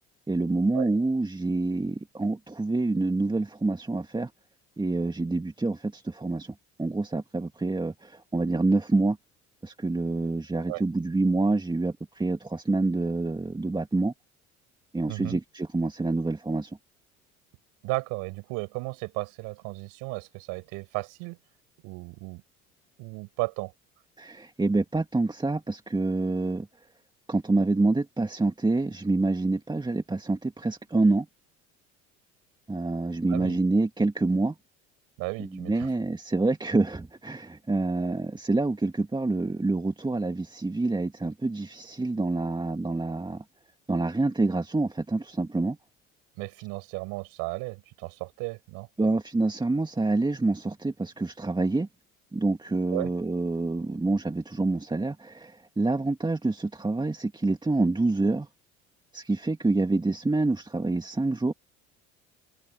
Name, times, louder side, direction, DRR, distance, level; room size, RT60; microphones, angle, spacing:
voice 1, 0.3-4.3 4.8-9.2 9.6-14.1 14.9-16.8 24.2-26.7 27.3-31.3 32.7-34.6 35.4-43.4 43.9-45.8 49.0-51.9 52.3-58.5 59.1-61.5, right 2 dB, 15° right, 2.2 m, -27 dB
voice 2, 17.8-21.4 21.8-22.4 23.0-23.7 33.3-33.6 35.2-35.9 46.4-48.9 52.9-53.1, right 27 dB, 75° right, 5.8 m, -34 dB
hypercardioid pair, 70°, 33 cm